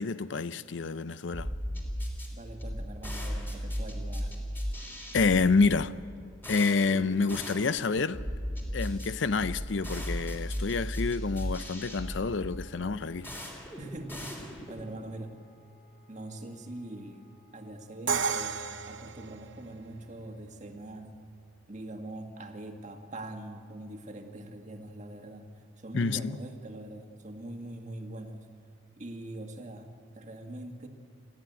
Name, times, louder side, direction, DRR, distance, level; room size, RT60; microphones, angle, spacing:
voice 1, 0.0-1.5 5.1-5.9 6.5-8.2 8.7-13.3 25.9-26.4, left 4 dB, 65° left, 0.6 m, -28 dB
sound 1, 1.3-14.9, equal, 10° left, 3.2 m, -37 dB
voice 2, 2.3-4.3 13.8-15.3 16.1-17.2 17.5-18.6 18.9-21.2 21.7-25.5 25.8-28.5 29.0-30.9, right 1 dB, 35° right, 1.8 m, -42 dB
Wind instrument woodwind instrument, 11.7-18.3, left 5 dB, 50° left, 6.9 m, -64 dB
Crash cymbal, 18.1-20.0, right 5 dB, 65° right, 0.8 m, -32 dB
29.0 x 13.5 x 9.1 m
head